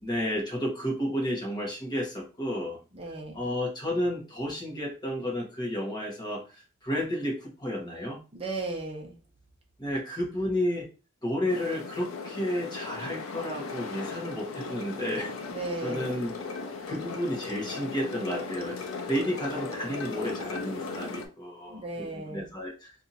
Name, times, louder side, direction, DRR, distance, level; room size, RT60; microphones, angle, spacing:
voice 1, 0.0-2.8 3.3-8.2 9.8-10.9 11.2-15.3 15.8-16.3 16.9-18.8 19.1-22.9, equal, 20° left, -2 dB, 1.0 m, -32 dB
voice 2, 2.9-3.4 8.3-9.1 15.5-16.2 21.7-22.5, right 2 dB, 25° right, 1 dB, 0.8 m, -36 dB
sound 1, 11.5-21.3, left 4 dB, 80° left, 0.6 m, -37 dB
2.8 x 2.6 x 4.0 m, 0.34 s
head